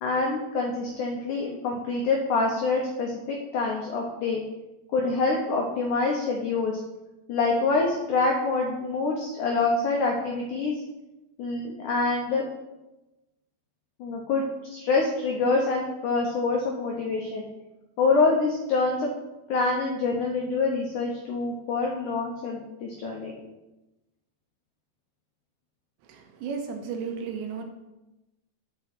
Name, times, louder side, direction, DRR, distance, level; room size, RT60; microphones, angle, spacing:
voice 1, 0.0-4.4 4.9-6.8 7.3-10.7 11.4-12.4 14.0-17.5 18.0-19.1 19.5-23.4, left 3 dB, 85° left, 0 dB, 1.7 m, -26 dB
voice 2, 26.1-27.7, right 6 dB, 90° right, 4 dB, 3.2 m, -34 dB
6.9 x 5.5 x 6.0 m, 1.0 s
omnidirectional pair, 4.9 m